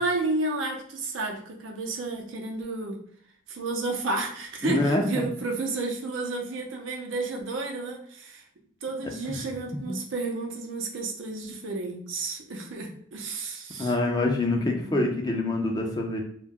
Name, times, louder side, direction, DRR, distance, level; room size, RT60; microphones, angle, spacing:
voice 1, 0.0-3.0 3.5-8.4 8.8-13.9 14.5-15.1, right 3 dB, 85° right, 1 dB, 0.6 m, -31 dB
voice 2, 4.6-5.2 9.9-10.0 13.8-16.2, left 2 dB, 20° left, 1 dB, 0.4 m, -25 dB
2.2 x 2.1 x 3.5 m, 0.63 s
head